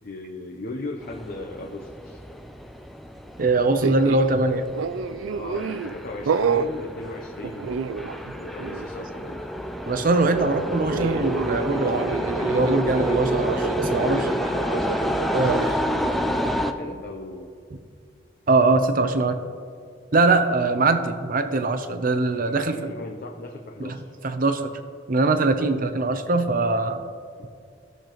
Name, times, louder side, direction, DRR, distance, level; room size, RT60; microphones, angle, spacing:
voice 1, 0.0-2.2 3.8-3.9 5.3-9.5 13.7-17.5 18.8-19.1 22.4-24.0 27.4-27.5, left 2 dB, 50° left, 1 dB, 0.7 m, -37 dB
sound 1, 1.0-16.7, equal, ahead, 0.4 m, -29 dB
voice 2, 3.4-4.7 9.9-14.2 15.3-15.6 18.5-19.4 20.1-22.8 23.8-23.9 24.2-24.7 25.1-27.0, right 3 dB, 45° right, 8 dB, 0.7 m, -22 dB
sound 2, 3.8-4.3 4.7-5.9 6.3-6.7 7.4-8.3 8.6-8.9 10.9-15.8, right 6 dB, 90° right, 0.4 m, -29 dB
16.5 x 6.7 x 3.0 m, 2.3 s
head